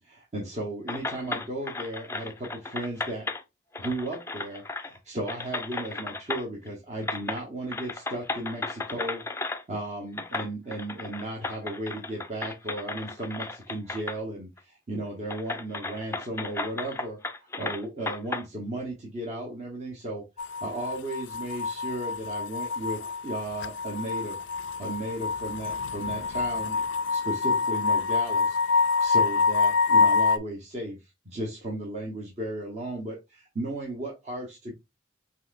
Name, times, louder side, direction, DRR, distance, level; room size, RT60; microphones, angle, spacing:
voice 1, 0.0-3.3 3.8-17.2 17.6-24.4 24.8-31.0 31.2-34.7, right 1 dB, 40° right, 1.0 m, -35 dB
sound 1, 0.9-3.4 3.7-5.0 5.3-6.7 7.0-7.4 7.7-9.6 10.2-14.2 14.6-14.7 15.3-18.4, left 3 dB, 15° left, 0.4 m, -35 dB
sound 2, 20.4-30.4, left 4 dB, 90° left, 0.4 m, -26 dB
5.7 x 3.0 x 2.5 m
head